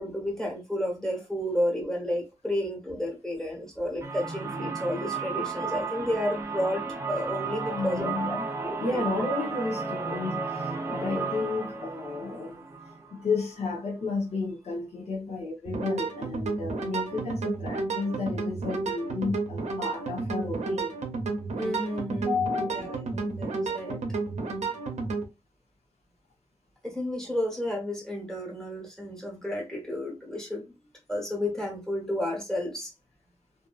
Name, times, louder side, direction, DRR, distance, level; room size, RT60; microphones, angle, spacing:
voice 1, 0.0-8.4 8.6-8.8 21.6-24.0 26.8-30.7 31.1-32.9, left 1 dB, 5° left, 1.1 m, -31 dB
sound 1, 4.0-13.7, right 4 dB, 25° right, 0.5 m, -34 dB
voice 2, 7.7-8.4 8.8-12.6 13.1-21.0 22.5-23.4, left 3 dB, 70° left, 0.8 m, -32 dB
sound 2, 15.6-25.2, right 3 dB, 85° right, 0.6 m, -32 dB
2.6 x 2.6 x 2.4 m
wide cardioid pair, 160°, 11 cm